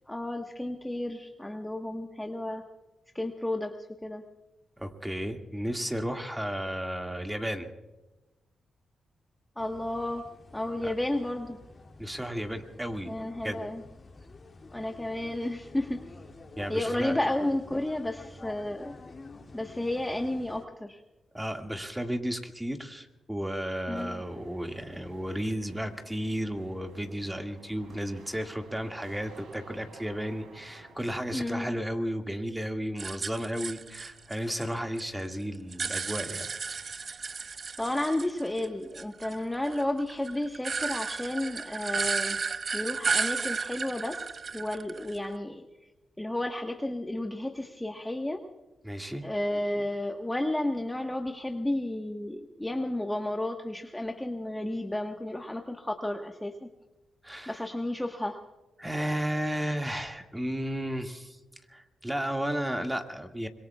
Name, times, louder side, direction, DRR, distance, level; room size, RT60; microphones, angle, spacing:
voice 1, 0.1-2.6 3.1-3.7 4.0-4.2 9.6-10.3 10.5-11.6 13.0-13.8 14.7-16.0 16.7-18.9 19.5-21.0 23.9-24.2 31.3-31.7 37.8-42.4 42.7-44.2 44.5-45.6 46.2-48.4 49.2-56.7 57.5-58.4, left 1 dB, 10° left, 3 dB, 1.3 m, -32 dB
voice 2, 4.8-7.7 10.8-10.9 12.0-13.1 13.4-13.6 16.6-17.2 21.3-36.6 48.8-49.3 57.2-57.7 58.8-61.4 61.7-63.5, equal, 10° right, 4 dB, 2.1 m, -33 dB
sound 1, 9.6-20.6, left 3 dB, 45° left, 2.5 m, -49 dB
sound 2, 23.9-31.0, right 4 dB, 85° right, 3.1 m, -53 dB
sound 3, 33.0-35.0 35.3-38.7 38.9-45.3, right 5 dB, 50° right, 0.4 m, -33 dB
26.0 x 22.5 x 2.4 m, 1.1 s
cardioid pair, 60°, 0 cm